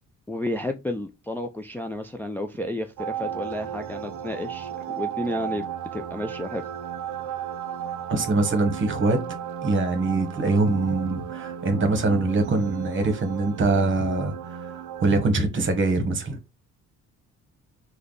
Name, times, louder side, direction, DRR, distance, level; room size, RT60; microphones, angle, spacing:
voice 1, 0.3-5.6 5.9-6.6, left 1 dB, 5° left, 0.4 m, -31 dB
sound 1, 3.0-15.2, right 9 dB, 75° right, 0.5 m, -34 dB
voice 2, 8.1-9.2 9.6-16.4, right 3 dB, 40° right, 1.1 m, -23 dB
3.2 x 2.2 x 3.9 m
cardioid pair, 90°, 30 cm